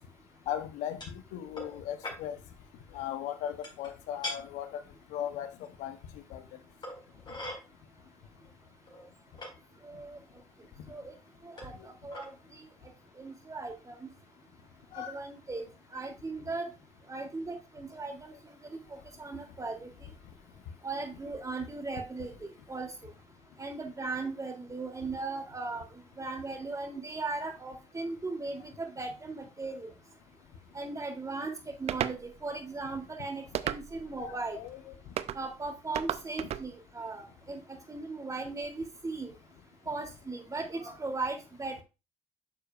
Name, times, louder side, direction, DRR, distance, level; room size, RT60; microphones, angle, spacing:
voice 1, 0.5-1.0 1.3-2.4 2.9-4.8 5.1-5.5 5.8-6.0 6.3-6.4 14.9-15.1 34.2-34.9, left 10 dB, 75° left, 0.9 m, -37 dB
sound 1, 1.0-1.2 1.6-1.8 2.0-2.2 3.6-3.9 4.2-4.4 5.6-5.7 6.8-7.6 8.4-8.5 8.9-9.5 10.4-10.5 11.6-11.8 12.1-12.3, left 1 dB, 40° left, 4.9 m, -40 dB
voice 2, 9.8-10.2 10.9-11.1 11.4-12.3 13.2-14.0 14.9-15.6 15.9-16.7 17.1-18.3 19.2-19.9 20.8-22.9 23.6-25.8 26.2-29.9 30.7-31.5 31.8-34.6 35.3-37.6 37.9-39.3 39.9-41.8, right 3 dB, 25° right, 3.0 m, -37 dB
sound 2, 31.9-32.2 33.5-34.1 35.2-35.4 35.9-36.7, right 10 dB, 60° right, 0.6 m, -33 dB
9.9 x 6.9 x 2.5 m
hypercardioid pair, 55°, 12 cm